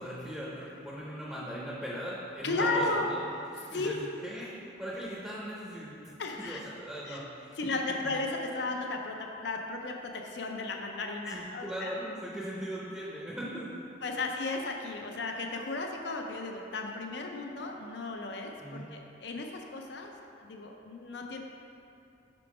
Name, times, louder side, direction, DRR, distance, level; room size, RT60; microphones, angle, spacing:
voice 1, 0.0-6.1 6.4-7.6 7.9-8.1 11.3-14.1 18.6-18.9, equal, 5° right, -7 dB, 0.7 m, -39 dB
voice 2, 2.4-3.1 3.7-4.0 6.2-6.6 7.0-7.2 7.6-11.9 14.0-21.4, left 3 dB, 60° left, 2 dB, 0.5 m, -35 dB
5.7 x 3.7 x 4.9 m, 2.7 s
head